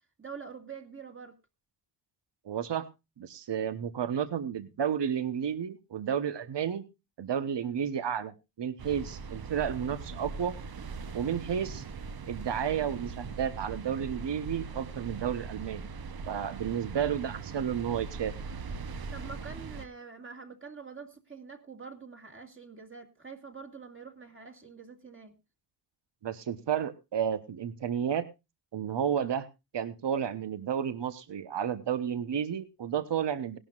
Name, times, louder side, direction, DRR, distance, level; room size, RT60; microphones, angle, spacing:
voice 1, 0.2-1.3 7.6-7.7 11.2-11.5 19.1-25.3, right 5 dB, 30° right, 3 dB, 2.1 m, -46 dB
voice 2, 2.4-2.9 3.2-6.8 7.2-10.5 11.1-11.8 12.3-15.9 16.3-18.3 26.2-28.3 28.7-29.5 29.7-33.6, right 8 dB, 75° right, 12 dB, 1.2 m, -32 dB
sound 1, 8.8-19.9, right 5 dB, 60° right, 0.9 m, -40 dB
19.0 x 11.5 x 2.5 m, 0.26 s
wide cardioid pair, 170°, 42 cm